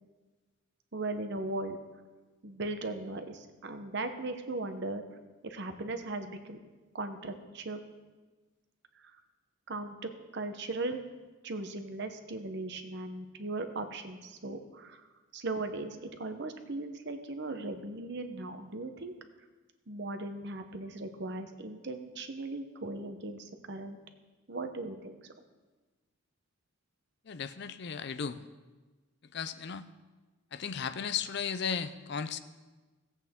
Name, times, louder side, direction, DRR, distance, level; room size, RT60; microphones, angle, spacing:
voice 1, 0.9-1.8 2.4-5.0 5.4-6.6 6.9-7.8 9.7-11.0 11.4-15.0 15.3-19.1 19.9-24.0 24.5-25.3, right 2 dB, 55° right, 7 dB, 0.9 m, -38 dB
voice 2, 27.3-28.5 29.3-29.9 30.5-32.4, left 6 dB, 55° left, 11 dB, 0.5 m, -35 dB
17.5 x 8.2 x 3.7 m, 1.3 s
head